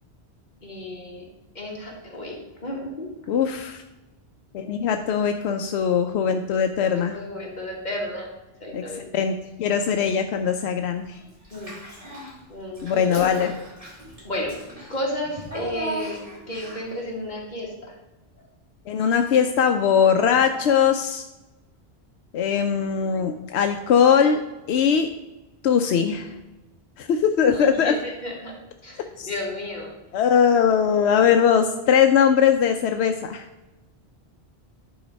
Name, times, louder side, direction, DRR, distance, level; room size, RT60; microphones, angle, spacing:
voice 1, 0.6-1.2 1.6-3.1 6.9-8.3 8.6-9.1 11.5-11.7 12.5-13.3 14.2-16.2 16.5-17.9 27.4-28.5 28.8-29.9, left 1 dB, 45° left, -2 dB, 2.0 m, -32 dB
voice 2, 3.3-3.8 4.5-7.2 8.7-9.3 9.6-11.2 12.8-13.5 18.9-21.3 22.3-24.4 24.7-25.1 25.6-26.3 27.0-27.9 29.2-29.3 30.1-33.4, left 7 dB, 85° left, 6 dB, 0.9 m, -20 dB
Child speech kid speaking / Bathtub (filling or washing), 11.4-12.4 12.7-17.0, right 2 dB, 35° right, 2.1 m, -37 dB
10.0 x 4.0 x 5.2 m, 1.1 s
omnidirectional pair, 1.1 m